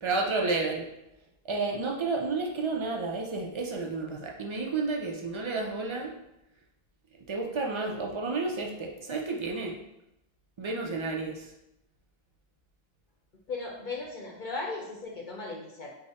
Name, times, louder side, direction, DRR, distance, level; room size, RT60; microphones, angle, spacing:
voice 1, 0.0-0.9 1.4-6.1 7.3-9.7 10.6-11.5, right 3 dB, 50° right, 0 dB, 0.3 m, -31 dB
voice 2, 13.5-15.9, left 3 dB, 55° left, -2 dB, 0.7 m, -37 dB
3.5 x 2.1 x 4.0 m, 0.88 s
omnidirectional pair, 1.0 m